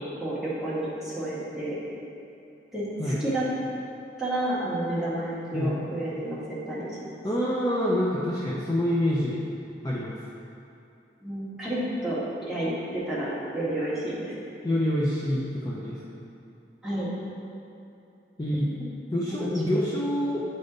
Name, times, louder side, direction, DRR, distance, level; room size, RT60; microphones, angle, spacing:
voice 1, 0.2-1.8 2.7-3.4 4.2-6.9 11.2-12.2 12.5-14.4 16.8-17.1 19.3-19.5, right 1 dB, 5° right, -10 dB, 1.6 m, -30 dB
voice 2, 7.2-9.4 9.8-10.1 14.6-16.0 18.4-18.7 19.1-20.4, left 1 dB, 20° left, -6 dB, 0.5 m, -26 dB
9.6 x 3.6 x 3.9 m, 2.7 s
head